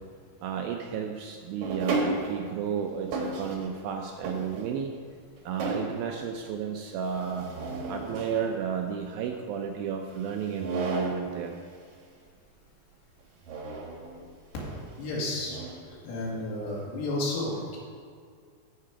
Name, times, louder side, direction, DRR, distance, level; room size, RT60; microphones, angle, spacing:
voice 1, 0.4-4.9 5.5-7.5 7.9-11.6, right 7 dB, 80° right, 3 dB, 2.1 m, -32 dB
sound 1, 1.6-2.5 3.1-3.8 4.2-5.0 5.4-6.0 7.1-8.1 10.4-11.3 13.4-14.2 14.6-14.8 15.4-15.8, right 2 dB, 65° right, 2.1 m, -33 dB
voice 2, 15.0-15.6 16.0-17.8, left 2 dB, 85° left, -5 dB, 4.3 m, -31 dB
13.5 x 4.7 x 5.8 m, 2.2 s
omnidirectional pair, 4.7 m